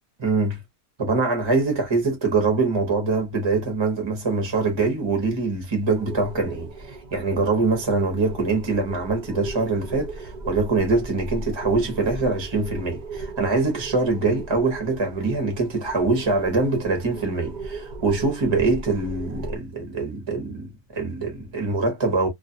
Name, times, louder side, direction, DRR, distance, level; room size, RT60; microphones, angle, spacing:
voice 1, 0.2-0.6 1.0-22.3, right 3 dB, 25° right, 0.7 m, -24 dB
sound 1, 5.9-19.6, right 3 dB, 80° right, 0.4 m, -37 dB
2.4 x 2.3 x 2.6 m
omnidirectional pair, 1.6 m